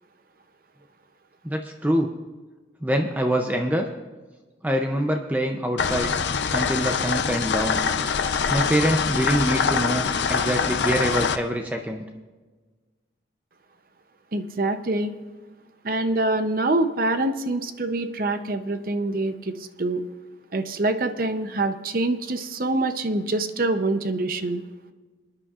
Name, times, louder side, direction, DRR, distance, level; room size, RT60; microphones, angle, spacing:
voice 1, 1.4-2.1 2.8-3.9 4.6-6.1 6.5-7.8 8.5-12.0, equal, 10° right, 3 dB, 0.5 m, -25 dB
sound 1, 5.8-11.4, left 6 dB, 70° left, 0.6 m, -24 dB
voice 2, 14.3-15.1 15.8-20.0 20.5-24.6, right 2 dB, 50° right, 9 dB, 0.7 m, -25 dB
28.0 x 9.8 x 2.4 m, 1.3 s
head